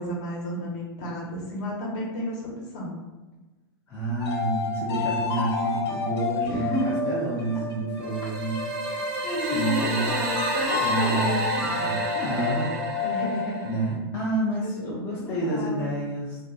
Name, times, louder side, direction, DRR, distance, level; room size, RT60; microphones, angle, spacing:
voice 1, 0.0-2.9 6.4-7.0 9.2-11.6 11.9-12.0 12.6-12.7 13.0-13.7 14.6-14.7 15.1-15.9, left 1 dB, 45° left, -3 dB, 1.0 m, -31 dB
voice 2, 3.9-8.6 8.9-9.0 9.5-10.1 10.8-12.7 12.9-13.2 13.6-16.4, right 2 dB, 15° left, -7 dB, 0.5 m, -29 dB
sound 1, 4.2-13.6, left 4 dB, 90° left, 0.7 m, -30 dB
sound 2, 8.0-13.9, right 3 dB, 45° right, 0.7 m, -31 dB
2.5 x 2.3 x 3.7 m, 1.2 s
hypercardioid pair, 150°, 13 cm